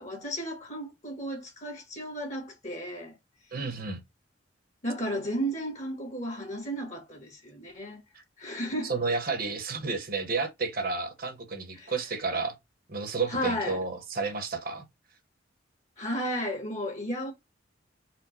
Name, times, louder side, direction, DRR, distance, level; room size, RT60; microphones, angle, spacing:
voice 1, 0.0-3.1 4.8-8.0 8.4-8.9 11.8-11.9 13.3-13.8 16.0-17.3, equal, 40° left, 1.7 m, -33 dB
voice 2, 3.5-4.0 8.8-12.6 12.9-14.8, right 4 dB, 50° right, 1.2 m, -31 dB
4.3 x 2.4 x 4.2 m
head